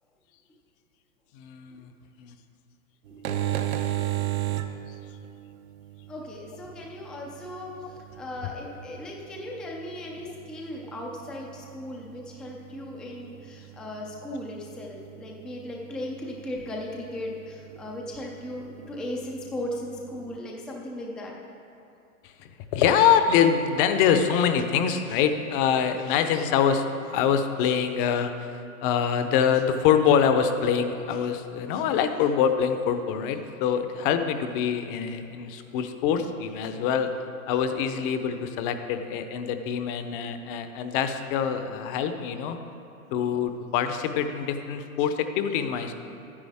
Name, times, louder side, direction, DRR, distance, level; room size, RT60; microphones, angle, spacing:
voice 1, 1.3-1.9 2.2-2.3 22.4-28.5 28.8-37.1 37.5-42.6 43.1-45.9, left 7 dB, 40° left, 8 dB, 0.7 m, -25 dB
sound 1, 3.1-20.4, right 13 dB, 75° right, 0.9 m, -37 dB
voice 2, 6.1-21.3, left 1 dB, ahead, -1 dB, 0.4 m, -37 dB
11.5 x 9.8 x 3.5 m, 2.8 s
hypercardioid pair, 135°, 43 cm